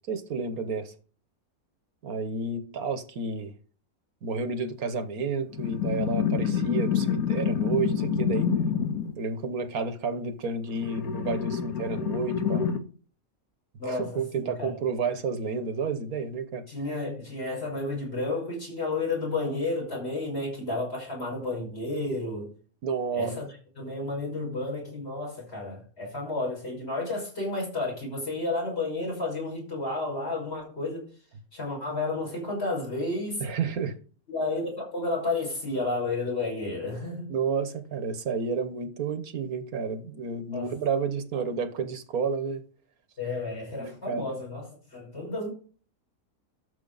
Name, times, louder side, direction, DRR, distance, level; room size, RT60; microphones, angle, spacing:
voice 1, 0.1-0.9 2.0-3.5 4.2-8.5 9.2-12.7 13.9-16.6 22.8-23.4 33.4-33.9 37.3-42.6 43.8-44.4, right 5 dB, 80° right, 1.6 m, -31 dB
sound 1, 5.5-9.1 10.7-12.8, left 7 dB, 80° left, 1.6 m, -27 dB
voice 2, 13.8-14.7 16.7-22.5 23.1-31.1 31.5-33.4 34.3-37.3 40.5-40.7 43.2-45.5, left 2 dB, 45° left, 6.0 m, -31 dB
12.5 x 7.2 x 4.0 m
omnidirectional pair, 1.5 m